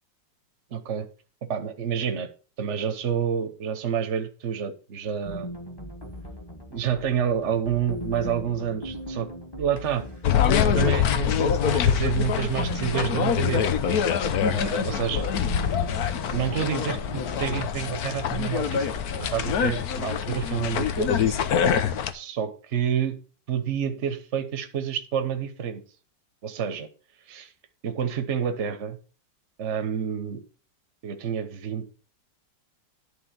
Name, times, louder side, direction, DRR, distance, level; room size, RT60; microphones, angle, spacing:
voice 1, 0.7-1.1 1.5-2.3 2.6-5.5 6.7-9.3 9.6-10.0 10.5-13.8 14.5-15.3 16.3-18.9 19.3-21.4 22.1-23.2 23.5-25.8 26.4-26.9 27.3-27.5 27.8-29.0 29.6-30.4 31.0-31.9, right 8 dB, 45° right, 7 dB, 1.3 m, -29 dB
sound 1, 5.2-19.7, equal, 15° left, 1.6 m, -39 dB
sound 2, 10.2-22.1, left 8 dB, 60° left, 1.2 m, -25 dB
11.0 x 3.9 x 7.4 m, 0.36 s
omnidirectional pair, 2.0 m